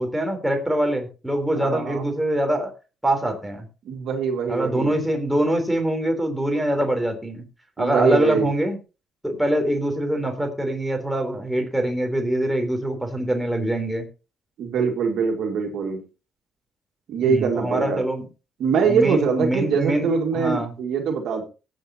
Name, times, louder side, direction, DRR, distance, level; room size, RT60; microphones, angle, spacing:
voice 1, 0.0-2.7 3.0-3.7 4.5-7.4 7.8-8.8 9.2-14.1 17.2-18.3 18.8-20.8, right 1 dB, 5° right, 3 dB, 3.6 m, -24 dB
voice 2, 1.6-2.0 3.9-5.0 7.8-8.5 14.6-16.0 17.1-18.0 18.6-21.5, right 5 dB, 75° right, 3 dB, 2.0 m, -23 dB
18.0 x 7.7 x 2.9 m, 0.32 s
cardioid pair, 90°, 0 cm